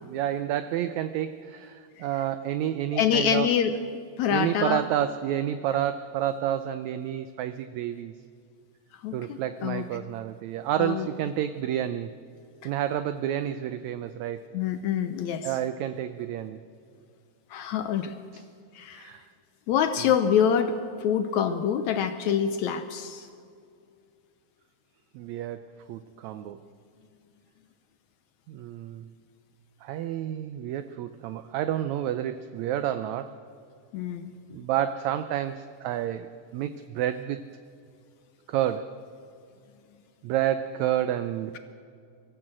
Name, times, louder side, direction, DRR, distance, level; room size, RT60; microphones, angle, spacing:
voice 1, 0.0-3.5 4.3-8.1 9.1-12.1 12.6-14.5 15.4-16.6 18.3-18.5 18.9-19.3 20.0-20.1 25.1-26.6 28.5-29.1 29.8-33.3 34.5-37.4 38.5-39.0 40.2-41.6, right 11 dB, 85° right, 11 dB, 1.6 m, -30 dB
voice 2, 2.9-3.7 4.2-4.8 9.0-9.8 10.8-11.1 14.5-15.5 17.5-18.1 18.8-19.1 19.7-20.7 21.0-23.3 33.9-34.3, left 8 dB, 75° left, 9 dB, 1.7 m, -26 dB
24.0 x 14.0 x 7.6 m, 2.4 s
omnidirectional pair, 3.9 m